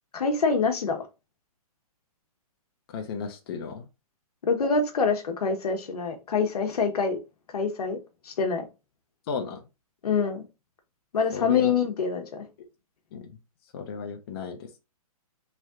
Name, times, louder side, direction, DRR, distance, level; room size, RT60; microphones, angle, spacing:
voice 1, 0.1-1.0 4.4-7.2 7.5-8.0 8.2-8.6 10.0-10.4 11.1-12.4, left 5 dB, 90° left, 1.1 m, -25 dB
voice 2, 2.9-3.9 9.3-9.6 11.3-11.7 13.1-13.3 13.7-14.8, left 6 dB, 40° left, 0.7 m, -34 dB
3.3 x 2.6 x 3.5 m
hypercardioid pair, 160°, 19 cm